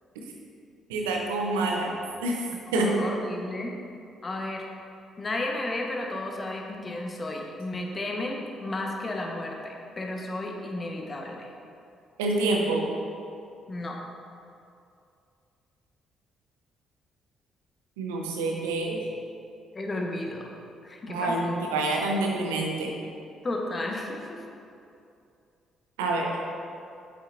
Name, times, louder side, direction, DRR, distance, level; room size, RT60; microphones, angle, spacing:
voice 1, 0.9-1.9 2.2-2.4 2.7-2.9 12.2-12.9 18.0-19.0 21.1-22.9 26.0-26.3, right 2 dB, 80° right, 0 dB, 0.9 m, -27 dB
voice 2, 2.7-3.8 4.2-4.6 5.2-11.5 13.7-14.0 19.7-20.5 20.8-21.6 23.4-24.4, left 2 dB, 35° left, 0 dB, 1.2 m, -33 dB
8.0 x 7.8 x 2.7 m, 2.5 s
hypercardioid pair, 45°, 0 cm